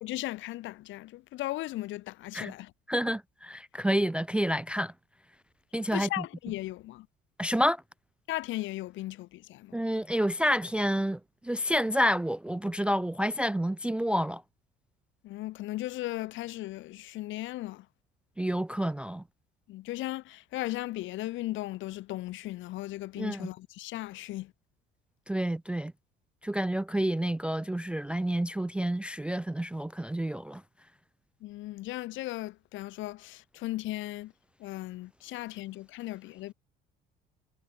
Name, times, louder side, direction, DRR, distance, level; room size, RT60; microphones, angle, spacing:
voice 1, 0.0-2.7 5.9-7.1 8.3-9.7 15.2-17.9 19.7-24.5 31.4-34.3 34.6-36.5, left 17 dB, 70° left, 1.5 m, -37 dB
voice 2, 2.9-4.9 5.7-6.2 7.4-7.8 9.7-14.4 18.4-19.2 23.2-23.5 25.3-25.9 26.4-30.6, equal, 5° right, 0.3 m, -29 dB
supercardioid pair, 95°, 21 cm